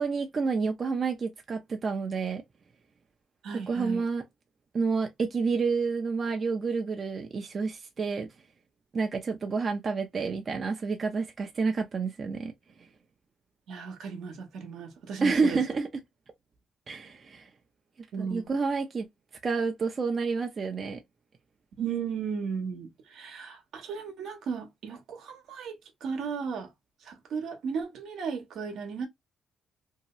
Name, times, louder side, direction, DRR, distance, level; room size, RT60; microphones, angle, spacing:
voice 1, 0.0-2.4 3.5-4.2 4.7-8.3 8.9-12.5 15.2-15.9 16.9-17.5 18.2-19.1 19.4-21.0, right 4 dB, 40° right, 0.6 m, -29 dB
voice 2, 3.4-4.0 13.7-15.6 18.1-18.5 21.8-26.7 27.0-29.1, right 6 dB, 75° right, 0.9 m, -35 dB
2.8 x 2.3 x 2.9 m
cardioid pair, 90°, 0 cm